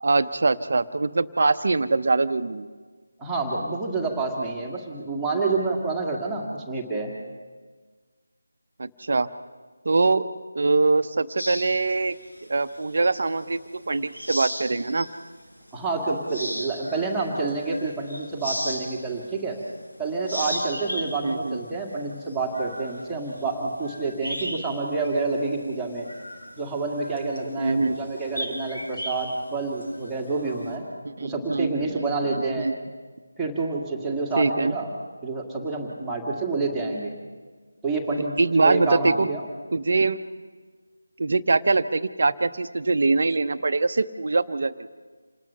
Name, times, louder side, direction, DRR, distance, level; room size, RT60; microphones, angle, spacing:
voice 1, 0.0-2.7 8.8-9.3 9.8-10.3 10.5-12.2 12.5-15.1 21.2-21.6 27.6-28.1 31.0-32.7 34.4-34.7 38.4-39.3 39.7-40.2 41.2-44.7, right 3 dB, 50° right, 11 dB, 0.8 m, -23 dB
voice 2, 3.2-7.1 15.7-19.6 20.0-26.1 26.6-30.8 31.2-32.7 33.4-34.9 35.2-37.1 37.8-38.4 38.6-39.4, right 3 dB, 5° right, -4 dB, 2.0 m, -28 dB
sound 1, 11.4-13.6 13.9-15.3 15.7-15.8 16.2-19.9 20.2-24.8 25.0-25.2 25.6-30.8, equal, 75° left, 4.9 m, -36 dB
27.5 x 19.5 x 5.6 m, 1.4 s
figure-of-eight pair, 160°, 0 cm